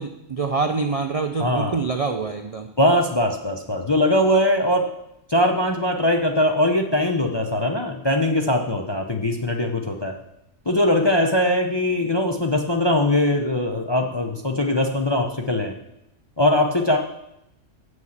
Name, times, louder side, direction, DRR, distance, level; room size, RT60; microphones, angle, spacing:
voice 1, 0.0-2.7, right 4 dB, 55° right, 6 dB, 0.4 m, -25 dB
voice 2, 1.4-1.8 2.8-4.9 5.3-10.1 10.7-15.7 16.4-17.0, left 1 dB, 30° left, 3 dB, 0.5 m, -21 dB
7.5 x 6.3 x 7.2 m, 0.82 s
omnidirectional pair, 1.4 m